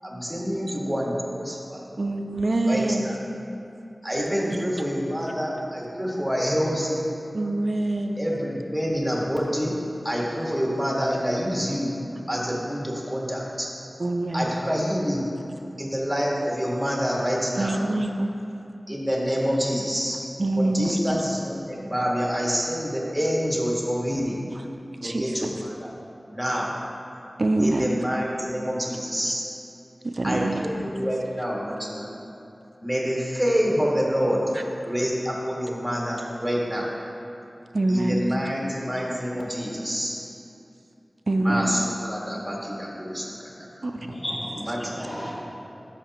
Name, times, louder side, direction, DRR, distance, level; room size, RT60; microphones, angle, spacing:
voice 1, 0.0-1.8 2.6-3.1 4.0-7.0 8.2-9.7 10.0-11.9 12.3-13.7 14.3-15.3 15.6-17.7 18.9-20.2 20.6-24.4 25.0-25.9 26.3-26.8 27.6-29.4 30.2-32.1 32.8-34.4 34.8-36.9 37.9-40.2 41.4-43.9 44.7-45.1, equal, 5° right, -4 dB, 1.7 m, -27 dB
voice 2, 2.0-3.1 4.5-4.6 7.3-8.2 14.0-14.5 17.6-18.3 20.4-21.2 24.5-24.7 25.0-25.5 27.4-28.0 30.0-30.9 34.5-34.6 37.7-38.3 41.3-41.7 43.8-44.0, right 2 dB, 60° right, 5 dB, 0.4 m, -25 dB
voice 3, 43.9-45.3, equal, 55° left, -6 dB, 2.0 m, -34 dB
13.0 x 5.7 x 3.0 m, 2.7 s
wide cardioid pair, 50°, 0 cm